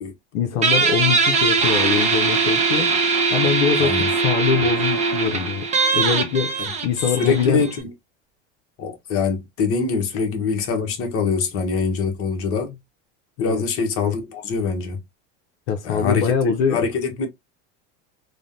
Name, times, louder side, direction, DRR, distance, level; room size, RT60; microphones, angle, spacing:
voice 1, 0.3-2.9 3.3-5.7 5.9-6.5 6.8-7.6 13.4-13.6 15.7-16.8, left 7 dB, 75° left, 0.6 m, -23 dB
Guitar, 0.6-7.8, right 4 dB, 20° right, 0.7 m, -21 dB
voice 2, 3.8-4.1 6.7-6.8 7.2-7.9 8.8-12.7 13.4-15.0 15.8-16.3 16.7-17.3, left 5 dB, 40° left, 1.0 m, -24 dB
3.2 x 2.2 x 2.6 m
supercardioid pair, 130°, 34 cm